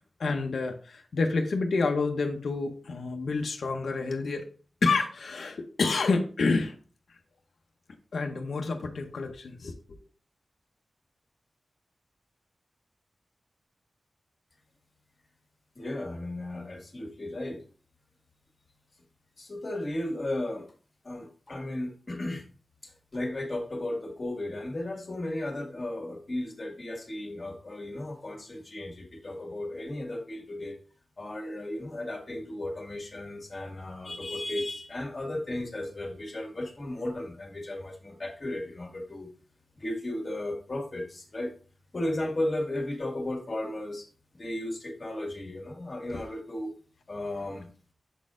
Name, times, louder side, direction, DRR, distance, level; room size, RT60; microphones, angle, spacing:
voice 1, 0.2-4.4 4.8-6.7 8.1-9.7 46.1-46.2, left 3 dB, 85° left, 4 dB, 0.8 m, -28 dB
voice 2, 15.7-17.6 19.4-20.7 21.0-22.4 22.8-30.8 31.2-39.3 39.8-41.5 41.9-44.1 44.3-46.7 47.1-47.7, left 1 dB, 40° left, 0 dB, 1.8 m, -35 dB
7.0 x 4.1 x 3.7 m, 0.40 s
wide cardioid pair, 95°, 0 cm